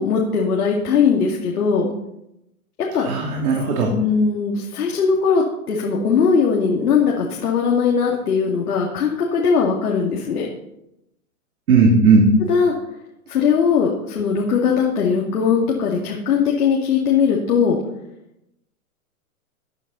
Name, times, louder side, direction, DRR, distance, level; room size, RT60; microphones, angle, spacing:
voice 1, 0.0-1.9 2.9-3.1 3.9-10.5 12.5-12.7 13.3-17.8, left 6 dB, 80° left, -2 dB, 2.6 m, -19 dB
voice 2, 3.0-3.9 11.7-12.3, right 4 dB, 75° right, 0 dB, 3.0 m, -16 dB
16.0 x 9.4 x 4.1 m, 0.85 s
hypercardioid pair, 145°, 44 cm